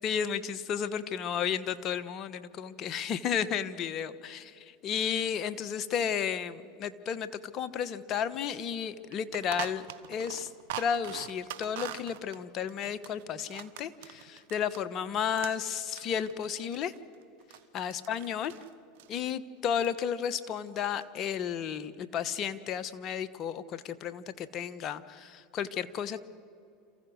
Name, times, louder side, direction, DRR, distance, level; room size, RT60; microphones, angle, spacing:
voice 1, 0.0-10.5 10.8-16.9 17.7-18.5 19.1-26.2, left 8 dB, 45° left, 13 dB, 1.1 m, -33 dB
sound 1, 8.3-8.4 8.7-8.8 9.1-14.9 15.2-17.6 17.9-18.7 19.0-19.2 19.6-20.0 20.3-21.0, right 13 dB, 75° right, 1.1 m, -43 dB
28.0 x 15.0 x 6.4 m, 2.6 s
hypercardioid pair, 95°, 0 cm